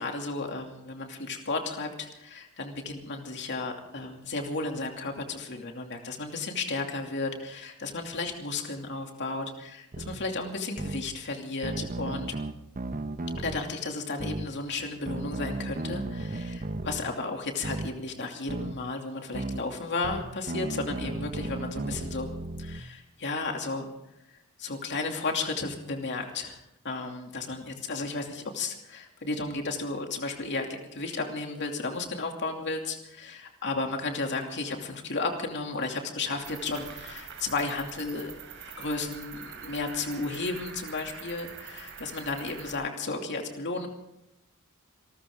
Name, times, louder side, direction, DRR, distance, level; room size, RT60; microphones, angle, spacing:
voice 1, 0.0-12.3 13.4-22.3 22.6-23.9 24.6-26.6 26.8-38.3 38.8-43.9, left 3 dB, 55° left, 3 dB, 2.7 m, -33 dB
sound 1, 9.9-10.2 10.8-11.0 11.6-13.6 14.2-14.5 15.1-17.0 17.6-17.9 18.5-18.8 19.3-19.6 20.0-22.8, right 2 dB, 40° right, 0.8 m, -34 dB
Cricket, 36.4-42.7, right 6 dB, 60° right, 5.1 m, -44 dB
28.0 x 13.5 x 3.7 m, 0.84 s
head